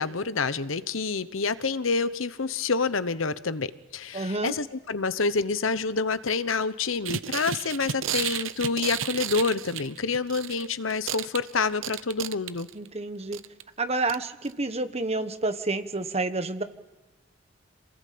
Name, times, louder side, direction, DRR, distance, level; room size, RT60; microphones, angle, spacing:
voice 1, 0.0-12.7, left 4 dB, 90° left, 14 dB, 1.0 m, -28 dB
voice 2, 4.1-4.5 12.7-13.4 13.8-16.6, right 2 dB, 30° right, 9 dB, 1.4 m, -29 dB
sound 1, 7.1-10.7 10.9-12.9 13.3-13.6 14.1-14.2 14.5-14.6, right 9 dB, 85° right, 0.8 m, -32 dB
27.5 x 19.0 x 8.6 m, 1.2 s
head